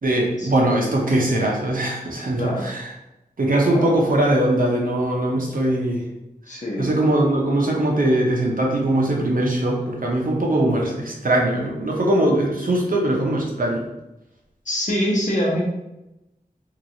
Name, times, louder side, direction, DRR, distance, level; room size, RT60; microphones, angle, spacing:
voice 1, 0.0-2.9 3.4-6.0 6.5-13.9, right 1 dB, 60° right, -2 dB, 0.8 m, -21 dB
voice 2, 6.5-6.9 14.7-15.6, equal, 50° left, -3 dB, 0.9 m, -24 dB
3.0 x 2.9 x 2.6 m, 0.93 s
wide cardioid pair, 60°, 16 cm